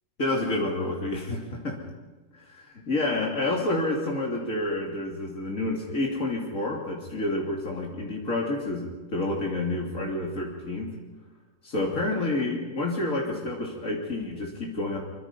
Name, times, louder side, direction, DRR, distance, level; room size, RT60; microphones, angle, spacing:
voice 1, 0.2-1.8 2.3-10.9 11.6-15.0, left 2 dB, 80° left, -2 dB, 3.4 m, -29 dB
25.5 x 24.0 x 5.6 m, 1.2 s
omnidirectional pair, 1.4 m